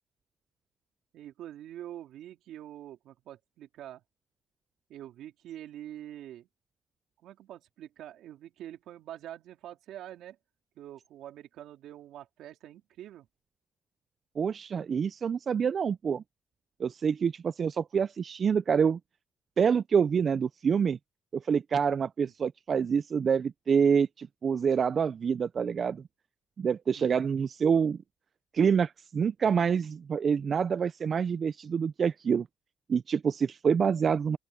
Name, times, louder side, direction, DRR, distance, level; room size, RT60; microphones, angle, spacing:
voice 1, 1.1-4.0 4.9-6.5 7.2-10.4 10.8-13.3 26.9-27.3, right 12 dB, 80° right, 3.7 m, -45 dB
voice 2, 14.4-16.2 16.8-19.0 19.6-21.0 21.3-26.0 26.6-28.0 28.5-32.5 32.9-34.4, right 6 dB, 50° right, 0.4 m, -27 dB
open air
cardioid pair, 90°, 0 cm